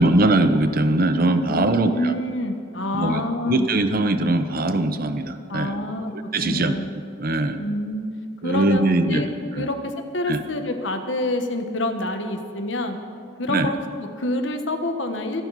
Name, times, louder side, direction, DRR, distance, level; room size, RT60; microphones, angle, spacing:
voice 1, 0.0-2.1 2.9-5.8 6.1-6.8 7.2-7.6 8.4-9.3 9.6-9.7 10.3-10.4 13.5-13.7, right 2 dB, 50° right, 9 dB, 0.9 m, -21 dB
voice 2, 1.5-3.7 5.5-6.1 6.4-6.9 7.6-8.0 8.4-9.3 9.5-13.0 13.4-15.4, left 1 dB, 75° left, 6 dB, 1.4 m, -27 dB
25.0 x 11.0 x 4.2 m, 2.3 s
head